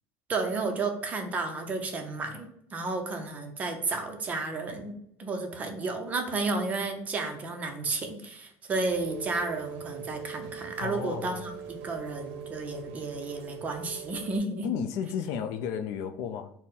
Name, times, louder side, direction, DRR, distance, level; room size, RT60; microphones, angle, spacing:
voice 1, 0.3-4.9 5.2-14.7, right 3 dB, 25° right, 4 dB, 0.6 m, -32 dB
Rain, 8.8-14.4, right 7 dB, 85° right, 0.6 m, -42 dB
voice 2, 10.8-11.6 14.6-16.5, left 8 dB, 65° left, 8 dB, 0.4 m, -33 dB
4.2 x 2.1 x 3.7 m, 0.72 s
cardioid pair, 150°, 6 cm